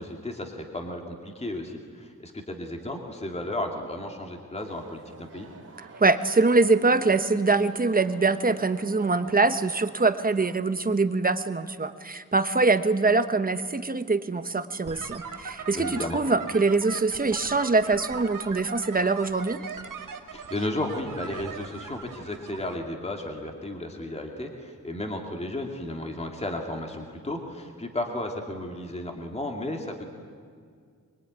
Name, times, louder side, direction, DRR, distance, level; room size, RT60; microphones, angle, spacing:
voice 1, 0.0-5.5 15.7-16.2 20.3-30.1, left 1 dB, 20° left, 2 dB, 2.5 m, -34 dB
sound 1, 4.6-10.6, right 4 dB, 45° right, 3.5 m, -47 dB
voice 2, 6.0-19.6, right 3 dB, 25° right, 10 dB, 1.1 m, -23 dB
sound 2, 14.9-22.8, right 5 dB, 70° right, 2.5 m, -40 dB
25.5 x 23.0 x 9.6 m, 2.1 s
wide cardioid pair, 160°, 33 cm